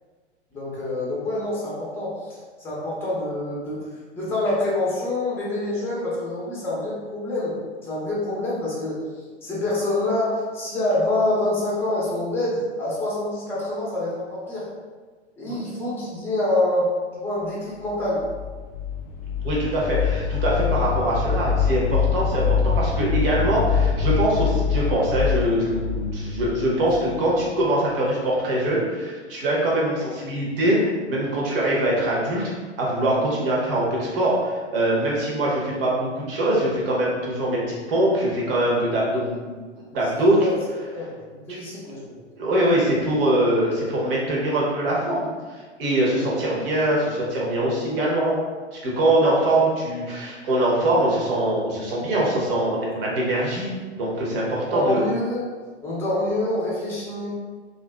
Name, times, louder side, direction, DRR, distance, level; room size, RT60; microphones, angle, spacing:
voice 1, 0.5-3.8 4.1-9.0 9.4-14.6 15.4-16.9 17.2-18.2 40.1-40.5 40.9-41.2 41.5-42.2 54.7-55.4 55.8-57.3, left 1 dB, 5° left, -6 dB, 0.7 m, -26 dB
sound 1, 18.0-27.8, left 6 dB, 40° left, 0.4 m, -24 dB
voice 2, 19.4-32.5 32.8-39.6 39.9-40.5 41.5-41.6 42.4-48.4 48.7-53.7 53.9-55.0, right 1 dB, 55° right, -4 dB, 1.0 m, -23 dB
2.8 x 2.5 x 2.2 m, 1.4 s
figure-of-eight pair, 105°, 35 cm